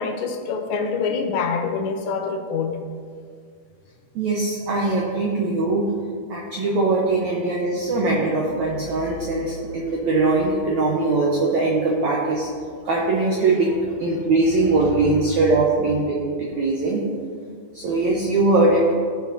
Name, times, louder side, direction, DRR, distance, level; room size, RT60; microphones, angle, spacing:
voice 1, 0.0-2.8, left 5 dB, 90° left, 4 dB, 3.1 m, -25 dB
voice 2, 4.1-5.8 6.3-12.5 12.8-17.0 17.7-18.9, right 2 dB, 90° right, -3 dB, 1.6 m, -21 dB
16.5 x 6.4 x 2.8 m, 2.1 s
omnidirectional pair, 4.9 m